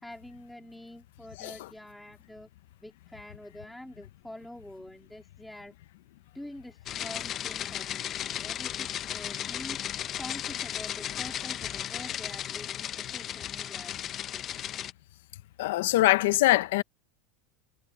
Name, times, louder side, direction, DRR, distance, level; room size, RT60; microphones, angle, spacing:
voice 1, 0.0-2.5 2.8-5.7 6.3-9.8 10.2-14.4, left 1 dB, ahead, 3.0 m, -46 dB
sound 1, 6.9-14.9, left 11 dB, 25° left, 0.7 m, -35 dB
voice 2, 15.6-16.8, left 18 dB, 70° left, 0.6 m, -23 dB
supercardioid pair, 165°, 0 cm